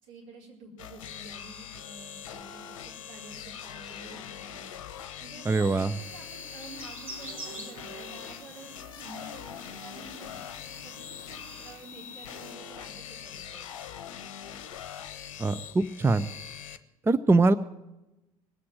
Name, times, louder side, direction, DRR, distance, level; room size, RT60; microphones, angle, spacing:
voice 1, 0.0-4.7 5.2-10.4 10.8-13.7, right 2 dB, 65° right, -2 dB, 4.5 m, -49 dB
sound 1, 0.8-16.8, left 9 dB, 65° left, 0.9 m, -43 dB
voice 2, 5.5-5.9 15.4-16.2 17.1-17.5, right 3 dB, 15° right, 13 dB, 0.5 m, -22 dB
sound 2, 6.0-12.5, right 1 dB, 85° right, 2.7 m, -47 dB
19.5 x 8.5 x 7.6 m, 0.97 s
figure-of-eight pair, 60°, 17 cm